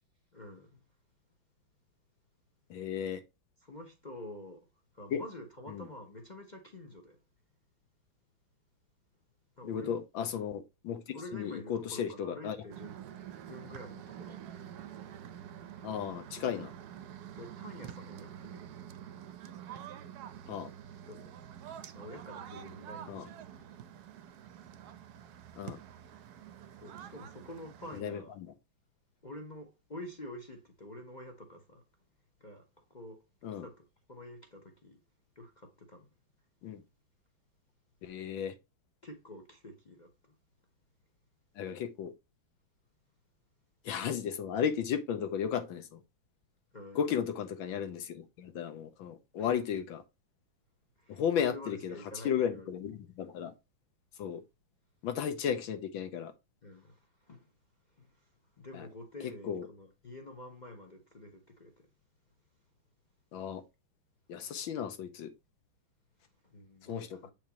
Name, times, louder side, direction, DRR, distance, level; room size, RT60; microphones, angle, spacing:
voice 1, 0.3-0.8 3.6-4.6 4.9-7.2 9.6-10.0 11.1-12.9 13.5-14.5 17.4-18.6 21.1-21.3 21.9-23.4 26.7-28.3 29.2-31.8 32.4-32.6 32.9-33.2 33.6-35.0 35.4-36.1 39.0-40.1 46.7-47.1 49.4-49.6 51.0-52.7 56.6-57.5 58.0-58.1 58.6-61.7 66.5-67.3, left 1 dB, 45° left, 0.6 m, -48 dB
voice 2, 2.7-3.2 5.1-5.2 5.7-5.9 9.6-12.6 15.8-16.7 20.5-20.7 23.1-23.3 25.6-25.8 27.9-28.2 33.4-33.6 36.6-36.8 38.0-38.5 41.6-42.1 43.8-46.0 46.9-50.0 51.1-52.0 52.2-53.5 54.2-54.4 55.0-56.3 58.7-58.9 59.2-59.7 63.3-63.6 64.3-65.3 66.9-67.2, left 8 dB, 75° left, 1.5 m, -34 dB
sound 1, 12.7-28.0, right 9 dB, 65° right, 1.0 m, -47 dB
7.5 x 4.7 x 2.9 m
omnidirectional pair, 2.2 m